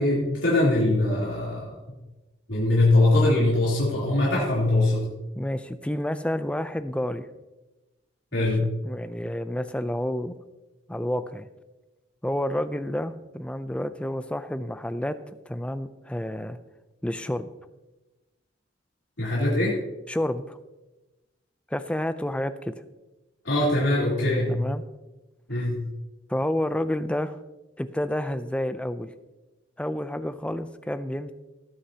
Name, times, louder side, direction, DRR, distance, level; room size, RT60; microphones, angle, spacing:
voice 1, 0.0-1.7 2.5-5.1 8.3-8.6 19.2-19.8 23.4-24.6 25.5-25.8, left 2 dB, 75° left, -7 dB, 3.4 m, -22 dB
voice 2, 5.4-7.3 8.3-8.5 8.8-10.4 10.9-11.5 12.2-15.2 15.5-16.6 17.0-17.5 20.1-20.6 21.7-22.7 24.5-24.8 26.3-27.4 27.8-29.1 29.8-31.3, left 1 dB, 5° left, 11 dB, 0.4 m, -29 dB
18.5 x 8.1 x 2.9 m, 1.1 s
head